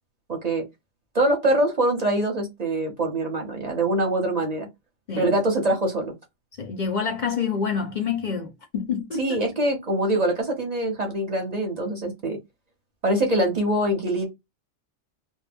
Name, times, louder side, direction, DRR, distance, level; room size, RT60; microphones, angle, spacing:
voice 1, 0.3-0.6 1.1-4.7 5.2-6.1 9.2-12.4 13.0-14.3, right 1 dB, 45° right, 0.7 m, -24 dB
voice 2, 6.6-9.2, left 6 dB, 55° left, 0.6 m, -27 dB
2.2 x 2.1 x 3.4 m
omnidirectional pair, 1.1 m